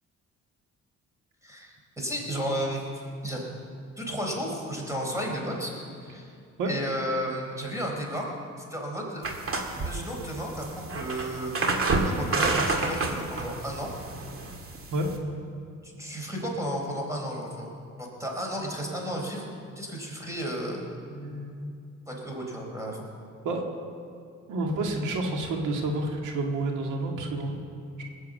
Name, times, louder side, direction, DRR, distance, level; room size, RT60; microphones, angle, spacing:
voice 1, 1.4-2.8 3.2-3.4 4.0-5.7 6.0-6.3 6.7-8.3 8.7-9.3 9.8-11.7 11.9-13.9 15.8-17.7 18.0-19.5 19.8-20.8 22.1-23.1, equal, 10° right, -1 dB, 4.2 m, -33 dB
sound 1, 9.2-15.2, right 3 dB, 45° right, 1.9 m, -29 dB
voice 2, 21.1-21.7 23.4-23.6 24.5-27.5 28.0-28.1, right 2 dB, 90° right, 2 dB, 1.9 m, -29 dB
19.0 x 7.5 x 7.8 m, 2.3 s
cardioid pair, 90°, 30 cm